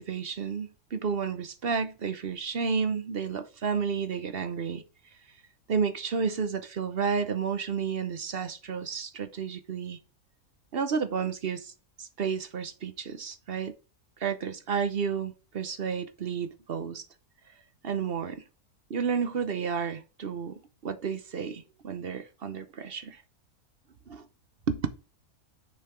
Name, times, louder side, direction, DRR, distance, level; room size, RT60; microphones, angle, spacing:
voice 1, 0.0-4.8 5.7-10.0 10.7-11.7 12.0-13.7 14.2-17.1 17.8-18.4 18.9-23.2 24.1-24.2 24.7-24.9, right 6 dB, 50° right, 0.8 m, -31 dB
6.7 x 5.6 x 4.5 m
omnidirectional pair, 1.6 m